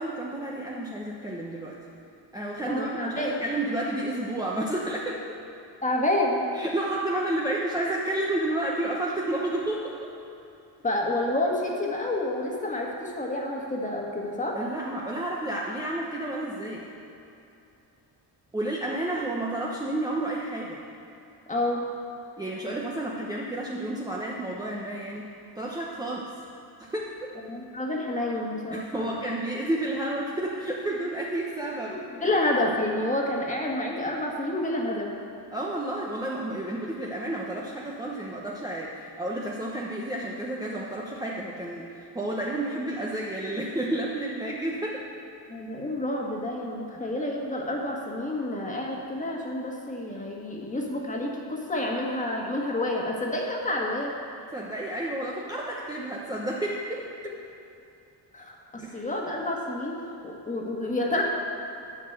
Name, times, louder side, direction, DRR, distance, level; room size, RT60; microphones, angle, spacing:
voice 1, 0.0-1.8 2.3-5.2 6.5-10.0 14.5-16.9 18.5-20.8 22.4-25.3 25.5-26.3 26.8-27.3 28.7-32.2 35.5-45.1 54.5-57.3 58.8-59.0, right 1 dB, 10° right, -4 dB, 0.8 m, -31 dB
voice 2, 2.6-3.3 5.8-6.5 10.8-14.6 21.5-21.9 27.5-29.2 32.2-35.1 45.5-54.1 58.3-61.2, left 1 dB, 15° left, -1 dB, 1.6 m, -29 dB
11.5 x 5.9 x 7.9 m, 2.8 s
cardioid pair, 150°, 43 cm